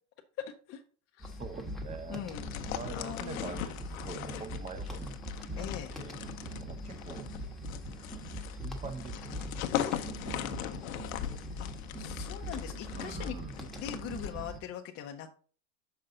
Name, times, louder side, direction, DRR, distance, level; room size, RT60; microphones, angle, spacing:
voice 1, 0.4-0.8 1.1-1.4 2.1-2.5 2.9-3.6 5.6-5.9 11.6-11.7 12.0-15.3, left 9 dB, 35° left, 3 dB, 0.7 m, -42 dB
sound 1, 1.2-14.6, right 1 dB, ahead, 1.1 m, -42 dB
voice 2, 1.4-2.2 2.7-5.2 5.6-6.2 6.5-7.3 8.5-11.4 12.9-13.6, right 4 dB, 15° right, 9 dB, 0.8 m, -45 dB
sound 2, 2.3-14.3, left 12 dB, 80° left, 0.9 m, -40 dB
6.6 x 5.5 x 3.8 m, 0.40 s
supercardioid pair, 130°, 41 cm